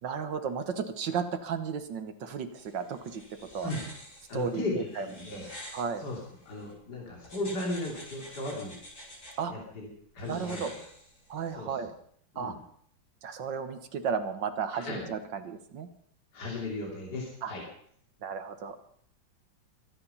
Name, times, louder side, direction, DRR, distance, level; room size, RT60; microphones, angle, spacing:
voice 1, 0.0-3.2 3.5-3.7 4.3-5.1 5.7-6.0 9.4-9.5 10.3-10.7 11.3-11.9 12.4-12.5 13.2-15.9 17.4-17.5 18.2-18.8, right 6 dB, 70° right, 9 dB, 1.9 m, -34 dB
sound 1, 2.6-6.7 7.2-9.3 10.2-11.5, equal, 40° left, 6.1 m, -48 dB
voice 2, 4.3-5.5 6.0-6.2 6.5-8.8 9.5-9.9 10.1-10.8 11.5-11.8 12.3-12.6 14.7-15.1 16.3-17.6, left 2 dB, 55° left, -3 dB, 3.5 m, -36 dB
23.0 x 9.9 x 5.5 m, 0.65 s
omnidirectional pair, 2.1 m